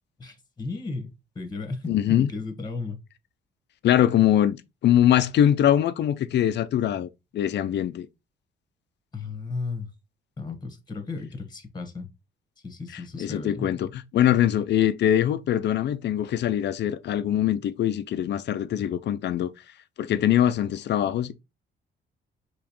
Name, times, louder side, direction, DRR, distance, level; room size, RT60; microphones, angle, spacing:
voice 1, 0.2-3.0 9.1-9.9 10.4-12.1 12.6-13.9, left 3 dB, 20° left, 1.3 m, -35 dB
voice 2, 1.9-2.3 3.8-4.6 4.8-8.1 13.2-13.9 14.1-19.5 20.0-21.3, left 11 dB, 60° left, 0.5 m, -22 dB
5.0 x 3.1 x 3.0 m
cardioid pair, 90°, 20 cm